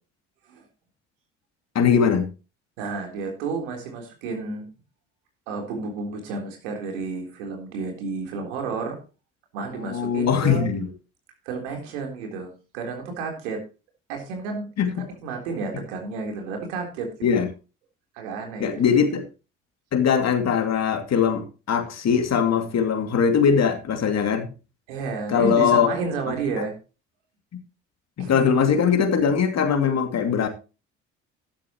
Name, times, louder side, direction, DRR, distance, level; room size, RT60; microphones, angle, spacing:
voice 1, 1.7-2.3 9.8-10.9 14.8-15.1 17.2-17.5 18.6-19.2 19.9-24.5 25.3-25.9 26.6-26.7 28.2-30.5, left 7 dB, 45° left, 2.4 m, -21 dB
voice 2, 2.8-4.7 5.5-9.0 9.5-10.7 11.5-13.6 14.1-14.7 14.9-17.4 18.2-18.8 24.9-26.8 28.2-28.5, right 4 dB, 75° right, 3.7 m, -31 dB
12.0 x 12.0 x 3.0 m
hypercardioid pair, 55°, 36 cm